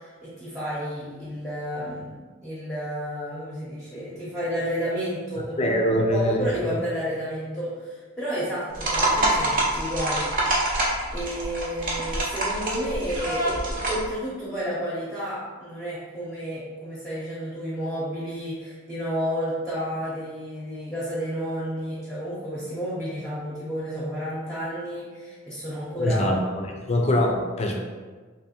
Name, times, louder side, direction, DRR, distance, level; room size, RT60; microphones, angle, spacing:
voice 1, 0.0-2.1 2.4-5.8 6.1-10.3 11.1-26.3, equal, ahead, -10 dB, 0.7 m, -31 dB
voice 2, 5.6-6.7 26.0-27.7, left 1 dB, 30° left, 1 dB, 0.4 m, -23 dB
sound 1, 8.7-14.1, right 1 dB, 40° right, 0.7 m, -26 dB
3.2 x 3.0 x 2.9 m, 1.4 s
head